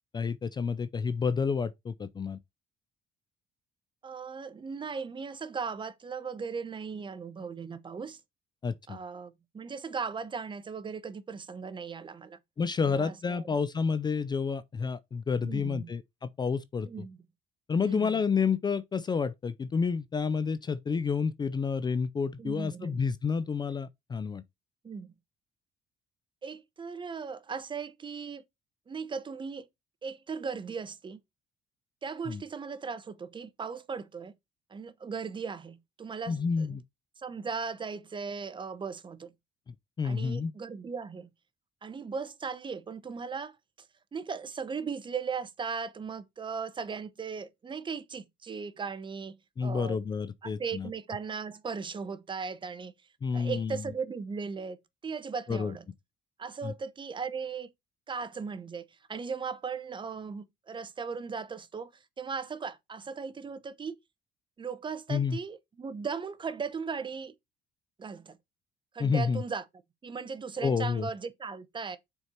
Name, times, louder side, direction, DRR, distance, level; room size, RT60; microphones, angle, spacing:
voice 1, 0.1-2.4 8.6-9.0 12.6-16.9 17.7-24.4 32.3-32.4 36.3-36.8 40.0-40.5 49.6-50.9 53.2-53.8 55.5-55.7 56.6-56.7 65.1-65.4 69.0-69.4 70.6-71.1, left 5 dB, 25° left, 0.4 m, -29 dB
voice 2, 4.0-8.2 8.9-12.4 12.8-13.5 15.4-15.9 16.9-17.2 17.8-18.2 22.4-23.0 24.8-25.1 26.4-28.4 28.9-29.7 30.0-31.2 32.0-34.3 34.7-36.8 37.2-39.3 40.0-41.3 41.8-43.9 44.1-50.0 50.4-52.9 53.3-55.8 56.4-57.7 58.1-61.9 62.2-64.0 64.6-67.3 68.0-68.4 68.9-69.6 70.0-72.0, right 5 dB, 30° right, 0.9 m, -37 dB
6.5 x 4.5 x 4.3 m
cardioid pair, 110°, 17 cm